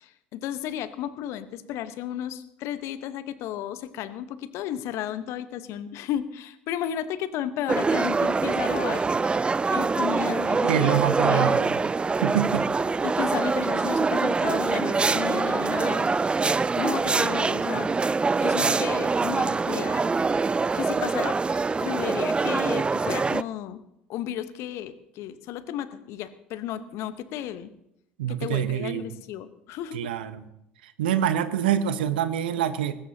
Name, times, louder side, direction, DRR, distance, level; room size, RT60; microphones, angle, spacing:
voice 1, 0.0-9.4 9.7-11.6 13.0-16.4 16.8-17.9 18.4-20.1 20.7-21.4 21.8-23.8 24.1-27.7 28.3-30.1, left 11 dB, 60° left, 13 dB, 1.0 m, -33 dB
sound 1, 7.7-23.4, right 4 dB, 20° right, 0.4 m, -24 dB
voice 2, 10.7-11.8 12.2-12.7 28.2-29.1 29.9-30.4 30.8-32.9, right 10 dB, 75° right, 12 dB, 0.9 m, -25 dB
20.0 x 16.5 x 2.8 m, 0.80 s
hypercardioid pair, 65°, 5 cm